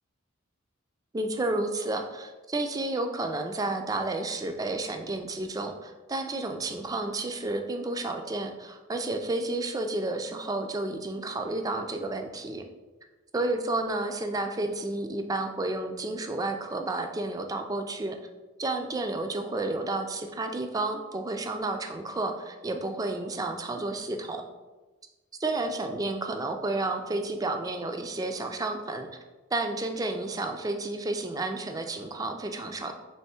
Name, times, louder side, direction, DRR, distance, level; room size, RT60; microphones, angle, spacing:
voice 1, 1.1-12.6 13.3-18.2 18.6-24.4 25.4-29.1 29.5-32.9, right 2 dB, 20° right, 5 dB, 0.3 m, -31 dB
3.4 x 3.0 x 4.2 m, 1.2 s
head